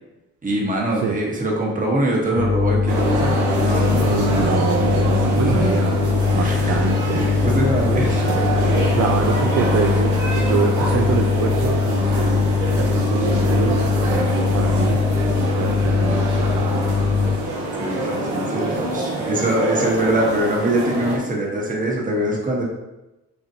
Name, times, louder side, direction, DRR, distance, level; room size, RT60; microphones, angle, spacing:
voice 1, 0.4-4.6 5.5-5.7 6.4-6.8 7.1-8.4 17.8-22.6, right 1 dB, 25° right, -2 dB, 1.3 m, -23 dB
sound 1, 2.3-17.4, left 5 dB, 20° left, 0.3 m, -21 dB
sound 2, 2.9-21.2, right 2 dB, 75° right, 1.4 m, -25 dB
voice 2, 4.0-6.0 6.3-7.3 8.9-10.0 10.3-12.5 12.7-15.0 15.3-17.0, right 6 dB, 50° right, 2 dB, 0.5 m, -25 dB
6.7 x 2.5 x 2.8 m, 0.99 s
cardioid pair, 90°, 30 cm